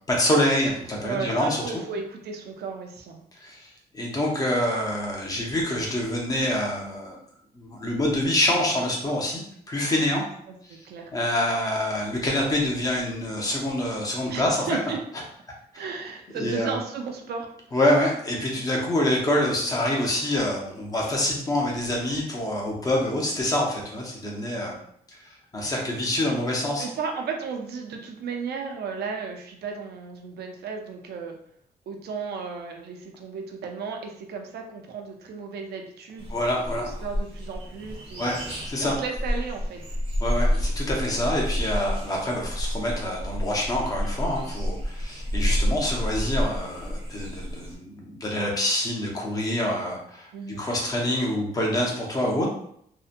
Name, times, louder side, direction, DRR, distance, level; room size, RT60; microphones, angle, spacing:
voice 1, 0.1-1.6 3.4-3.7 3.9-7.2 7.5-9.4 9.7-10.2 10.7-10.8 11.1-14.6 16.3-16.7 17.7-24.8 25.5-26.8 36.3-36.9 38.2-39.0 40.2-50.3 50.6-52.5, left 1 dB, 20° left, -1 dB, 0.5 m, -26 dB
voice 2, 1.0-3.2 10.5-11.1 14.3-15.0 15.7-17.5 26.8-31.4 31.9-36.3 36.7-38.5 38.8-39.8 50.3-50.7, right 5 dB, 80° right, 3 dB, 0.5 m, -34 dB
sound 1, 36.2-47.8, equal, 35° right, 0.6 m, -29 dB
2.7 x 2.1 x 2.5 m, 0.68 s
wide cardioid pair, 170°, 16 cm